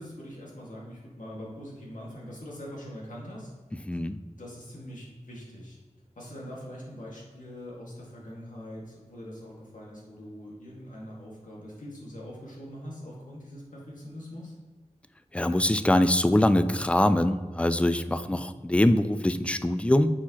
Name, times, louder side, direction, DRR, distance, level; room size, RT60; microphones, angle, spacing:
voice 1, 0.0-3.5 3.9-4.0 4.4-5.8 6.2-14.5 18.1-18.4, equal, 80° left, -4 dB, 1.9 m, -43 dB
voice 2, 3.9-4.2 15.3-20.1, left 1 dB, 10° left, 11 dB, 0.3 m, -23 dB
8.5 x 4.5 x 2.9 m, 1.4 s
wide cardioid pair, 55°, 13 cm